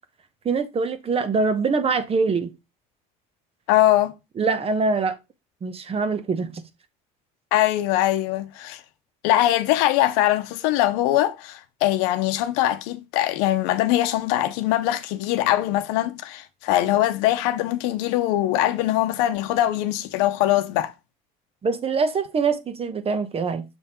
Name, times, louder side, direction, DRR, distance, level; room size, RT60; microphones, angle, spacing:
voice 1, 0.4-2.5 4.4-5.2 5.6-6.6 21.6-23.6, right 4 dB, 35° right, 1.0 m, -24 dB
voice 2, 3.7-4.1 7.5-8.8 9.2-20.9, left 14 dB, 80° left, 0.8 m, -22 dB
6.2 x 3.6 x 4.2 m
supercardioid pair, 90°, 17 cm